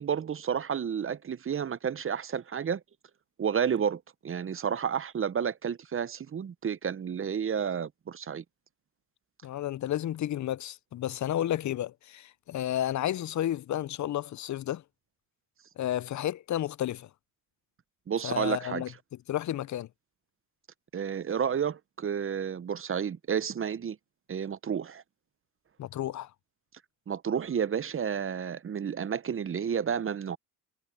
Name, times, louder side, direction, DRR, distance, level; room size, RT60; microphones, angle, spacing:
voice 1, 0.0-2.8 3.4-8.4 18.1-18.8 20.9-24.0 24.3-25.0 27.1-30.4, right 7 dB, 35° right, 0.8 m, -31 dB
voice 2, 9.4-14.8 15.8-17.1 18.2-18.9 19.3-19.9 25.8-26.3, left 12 dB, 45° left, 0.7 m, -32 dB
supercardioid pair, 70°, 39 cm